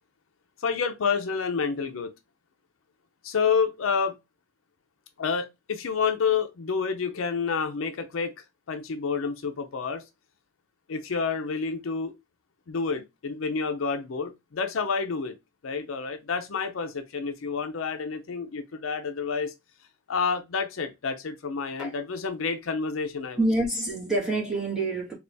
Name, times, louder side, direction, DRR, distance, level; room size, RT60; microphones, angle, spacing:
voice 1, 0.6-2.1 3.2-4.2 5.2-8.3 8.7-10.0 10.9-12.1 12.7-15.4 15.6-19.5 20.1-23.4, left 5 dB, 80° left, 0.5 m, -29 dB
voice 2, 23.4-25.1, right 2 dB, 5° right, 1.5 m, -26 dB
3.4 x 2.4 x 3.9 m
head